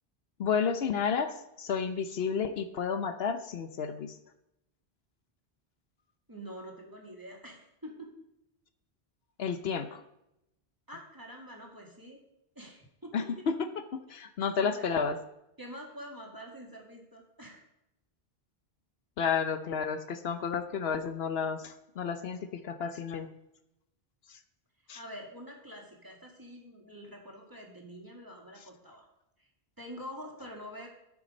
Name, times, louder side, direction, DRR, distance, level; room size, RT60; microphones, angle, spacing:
voice 1, 0.4-4.2 9.4-10.0 13.1-13.6 14.1-15.2 19.2-22.4 22.6-23.3 24.9-25.0, left 6 dB, 75° left, 9 dB, 1.0 m, -31 dB
voice 2, 6.3-8.2 10.9-12.2 12.6-13.5 14.5-14.9 15.6-17.6 24.9-29.1 29.4-29.5 29.8-30.9, equal, 20° right, -1 dB, 1.9 m, -46 dB
13.0 x 5.9 x 5.3 m, 0.86 s
omnidirectional pair, 1.0 m